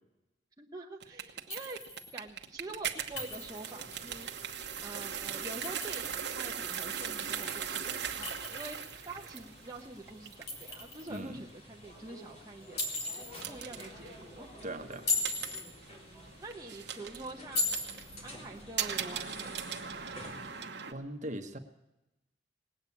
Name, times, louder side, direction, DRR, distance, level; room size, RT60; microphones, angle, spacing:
voice 1, 0.6-1.8 2.1-4.3 4.8-12.8 13.5-14.5 15.9-20.2, right 2 dB, 20° right, -1 dB, 1.0 m, -46 dB
sound 1, 1.0-20.9, right 8 dB, 65° right, 1.2 m, -40 dB
Chink clink, 1.5-2.1 3.2-3.8 5.4-6.3 8.2-9.1 10.5-11.2 12.8-13.5 14.9-15.7 17.6-18.2, left 3 dB, 60° left, 3.0 m, -36 dB
sound 2, 3.0-20.7, left 1 dB, 35° left, 3.5 m, -53 dB
voice 2, 11.1-11.4 14.6-15.1 20.9-21.6, right 1 dB, 40° right, 6 dB, 1.2 m, -40 dB
19.0 x 8.9 x 8.4 m, 0.95 s
head